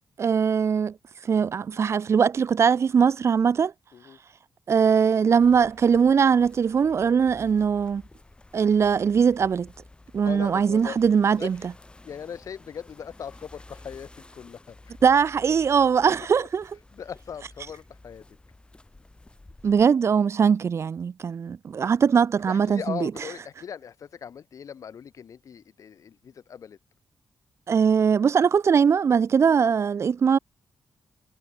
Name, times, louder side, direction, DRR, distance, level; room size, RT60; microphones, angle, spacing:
voice 1, 0.2-0.9 1.2-3.7 4.7-8.0 8.5-9.7 10.1-11.6 15.0-16.6 19.6-23.1 27.7-30.4, right 6 dB, 50° right, 0.7 m, -21 dB
sound 1, 5.4-19.9, left 2 dB, 15° left, 6.7 m, -51 dB
voice 2, 10.2-11.0 11.4-11.7 12.0-15.0 16.4-16.5 16.9-18.2 22.5-26.8, left 7 dB, 60° left, 3.2 m, -39 dB
wide cardioid pair, 125°, 6 cm